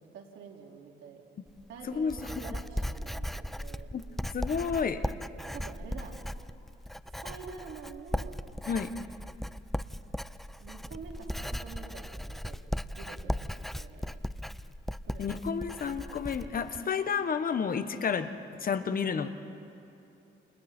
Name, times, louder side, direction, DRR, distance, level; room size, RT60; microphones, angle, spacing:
voice 1, 0.1-1.2 1.7-3.9 5.5-6.1 7.2-8.4 10.6-12.6 13.0-14.2 15.0-15.4, right 5 dB, 85° right, 0 dB, 3.4 m, -47 dB
Writing, 1.5-16.8, equal, ahead, 0.4 m, -37 dB
voice 2, 4.3-5.0 8.7-8.9 15.2-18.3 18.6-19.3, left 6 dB, 45° left, 9 dB, 1.3 m, -30 dB
30.0 x 29.0 x 4.5 m, 2.8 s
cardioid pair, 90°, 20 cm